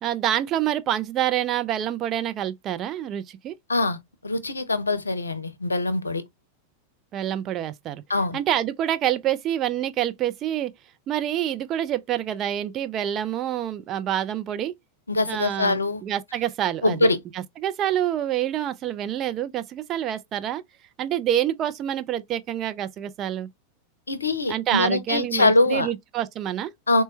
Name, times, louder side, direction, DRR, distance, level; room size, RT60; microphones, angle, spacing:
voice 1, 0.0-3.6 7.1-8.0 8.3-10.7 11.1-14.7 15.3-17.0 17.6-20.6 21.0-23.5 24.5-26.7, right 11 dB, 30° right, 0.4 m, -27 dB
voice 2, 3.7-6.2 8.1-8.4 15.1-16.0 16.8-17.2 24.1-25.9 26.9-27.0, left 2 dB, 75° left, 0.6 m, -23 dB
4.2 x 2.2 x 3.0 m
figure-of-eight pair, 90°, 0 cm